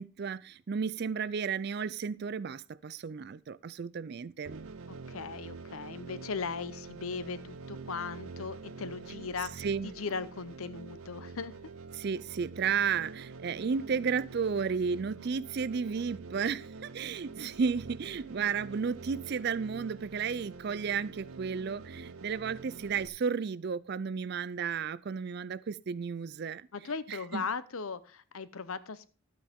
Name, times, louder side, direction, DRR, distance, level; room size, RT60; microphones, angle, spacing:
voice 1, 0.0-4.7 9.6-9.9 11.9-26.7 27.1-27.4, right 6 dB, 50° right, 0.4 m, -33 dB
sound 1, 4.4-23.1, right 4 dB, 80° right, 0.7 m, -46 dB
voice 2, 4.9-11.5 26.7-29.1, left 5 dB, 75° left, 0.8 m, -38 dB
12.0 x 8.5 x 3.5 m
head